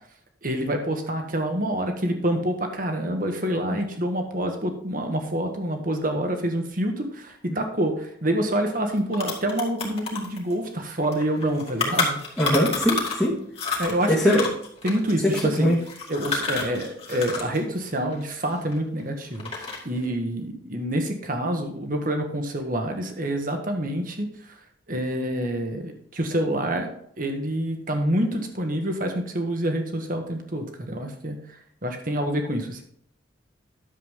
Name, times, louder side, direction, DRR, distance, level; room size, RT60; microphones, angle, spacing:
voice 1, 0.4-12.2 13.8-14.4 14.8-15.7 16.1-24.3 24.9-26.9 27.2-31.4 31.8-32.8, right 1 dB, 45° right, 4 dB, 1.6 m, -27 dB
sound 1, 8.5-8.6 8.9-13.3 13.5-17.6 17.8-19.0 19.3-20.0, left 4 dB, 30° left, 2.1 m, -29 dB
voice 2, 12.4-13.3 14.1-14.5 15.2-15.8, left 1 dB, 5° left, -8 dB, 1.6 m, -21 dB
10.5 x 7.4 x 3.6 m, 0.70 s
head